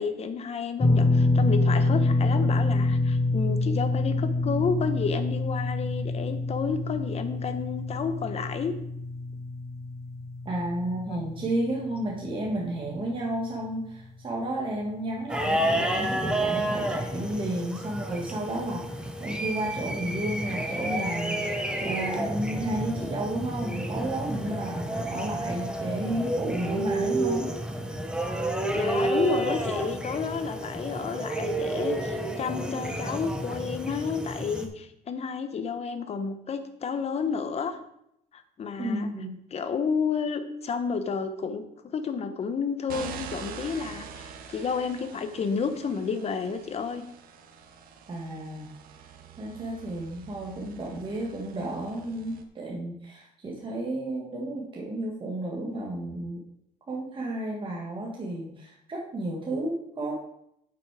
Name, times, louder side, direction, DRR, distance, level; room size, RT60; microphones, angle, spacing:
voice 1, 0.0-8.7 11.1-11.2 28.7-37.8 38.3-39.1 39.5-41.6 41.9-47.0, left 5 dB, 45° left, 8 dB, 1.1 m, -31 dB
sound 1, 0.8-13.0 13.3-13.5 15.2-15.3, left 2 dB, 20° left, 0.8 m, -26 dB
voice 2, 10.5-27.5 38.8-39.4 48.1-48.7 49.4-56.4 56.9-60.2, right 1 dB, 35° right, -3 dB, 1.7 m, -32 dB
sound 2, 15.3-34.7, right 1 dB, 5° right, 1.1 m, -30 dB
sound 3, 42.9-52.4, right 7 dB, 85° right, 1.0 m, -45 dB
8.4 x 6.2 x 4.8 m, 0.76 s
cardioid pair, 115°, 15 cm